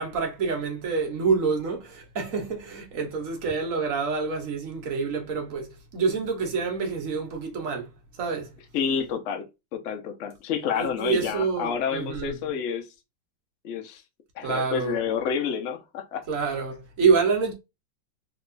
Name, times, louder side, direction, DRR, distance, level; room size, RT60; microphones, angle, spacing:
voice 1, 0.0-8.5 10.8-12.4 14.4-15.0 16.3-17.5, right 5 dB, 50° right, 1.2 m, -27 dB
voice 2, 8.7-9.5 9.7-12.9 13.6-14.0 14.4-16.2, left 7 dB, 60° left, 0.8 m, -29 dB
3.5 x 2.9 x 2.5 m
omnidirectional pair, 2.0 m